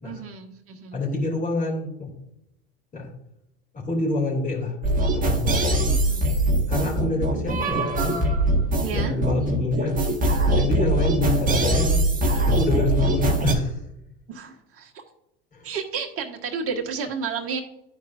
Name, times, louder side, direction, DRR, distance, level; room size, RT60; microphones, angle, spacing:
voice 1, 0.0-1.0 5.9-6.3 8.8-9.2 14.3-15.0 15.6-17.6, right 5 dB, 45° right, 2 dB, 1.5 m, -32 dB
voice 2, 0.9-2.1 2.9-3.1 3.7-4.8 5.1-5.8 6.7-8.1 8.9-10.0 10.5-12.0 12.4-13.8 15.5-15.7, left 2 dB, 25° left, 0 dB, 2.8 m, -26 dB
sound 1, 4.8-13.5, right 1 dB, 25° right, 1.4 m, -22 dB
12.0 x 4.7 x 2.5 m, 0.82 s
hypercardioid pair, 75°, 32 cm